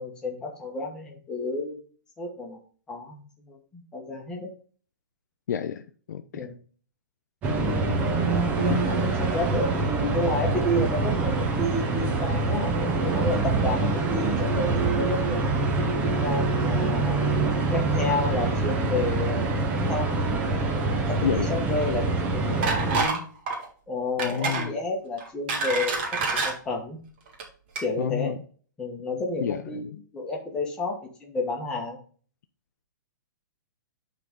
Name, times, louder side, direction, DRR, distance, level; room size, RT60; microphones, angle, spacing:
voice 1, 0.0-1.8 2.2-2.6 2.9-4.5 6.3-6.6 8.6-12.7 13.1-15.7 16.0-17.3 17.7-20.2 21.1-23.2 23.9-27.0 27.8-28.4 28.8-32.0, left 2 dB, 5° left, 1.3 m, -31 dB
voice 2, 5.5-5.8 6.1-6.5 7.5-8.1 8.6-9.0 21.2-21.5 24.2-24.7 28.0-28.4 29.4-29.9, left 8 dB, 60° left, 0.6 m, -30 dB
sound 1, 7.4-23.0, right 3 dB, 15° right, 0.8 m, -25 dB
sound 2, 22.6-23.2 23.5-23.7 24.2-24.7 25.2-26.5 27.3-27.4 27.7-27.8, right 4 dB, 35° right, 1.9 m, -27 dB
10.0 x 4.0 x 3.7 m
hypercardioid pair, 175°, 11 cm